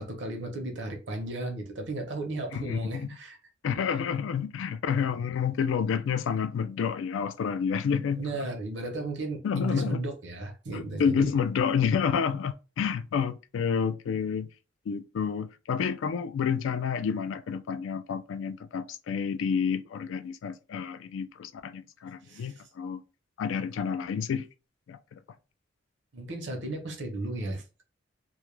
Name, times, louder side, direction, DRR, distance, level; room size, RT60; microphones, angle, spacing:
voice 1, 0.0-3.4 8.2-11.3 22.2-22.5 26.1-27.8, right 2 dB, 70° right, 0.7 m, -35 dB
voice 2, 2.5-3.1 3.6-8.5 9.4-10.0 10.7-14.5 14.9-23.0 23.4-24.5 24.9-25.2, left 6 dB, 85° left, 0.3 m, -29 dB
2.3 x 2.1 x 3.0 m
head